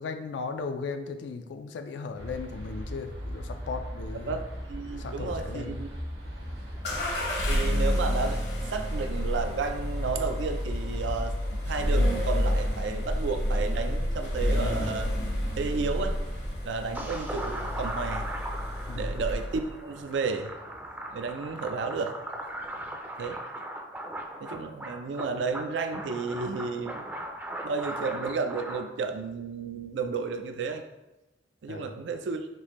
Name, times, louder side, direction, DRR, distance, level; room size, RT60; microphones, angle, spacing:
voice 1, 0.0-4.4 4.9-5.8 18.9-19.2 31.7-32.0, left 4 dB, 90° left, 7 dB, 0.3 m, -37 dB
sound 1, 2.2-16.5, equal, 65° right, 1.2 m, -38 dB
voice 2, 4.7-5.9 7.5-11.4 11.6-15.1 15.6-16.2 16.6-18.3 18.9-20.5 21.1-22.2 23.2-23.4 24.4-27.1 27.6-30.8 31.6-32.5, right 4 dB, 90° right, 7 dB, 0.4 m, -32 dB
sound 2, 6.8-19.7, left 1 dB, 70° left, 0.8 m, -30 dB
sound 3, 16.9-28.8, right 1 dB, 10° right, 0.4 m, -38 dB
6.1 x 2.6 x 2.9 m, 1.0 s
head